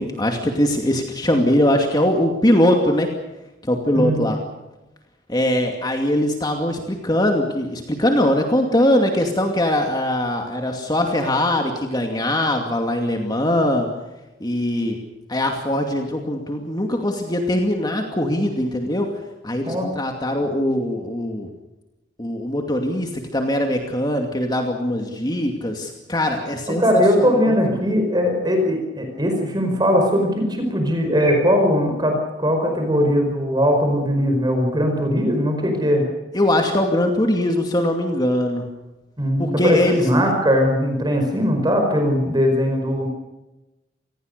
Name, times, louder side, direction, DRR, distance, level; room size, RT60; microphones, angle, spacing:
voice 1, 0.0-3.1 3.7-4.4 5.3-13.9 14.4-15.0 15.3-19.1 19.4-21.5 22.2-26.8 27.2-27.5 36.3-38.7 39.4-40.0, left 1 dB, 25° left, 3 dB, 2.5 m, -21 dB
voice 2, 26.8-36.1 39.2-43.1, equal, 25° right, 4 dB, 5.2 m, -19 dB
28.0 x 20.0 x 6.8 m, 1.0 s
head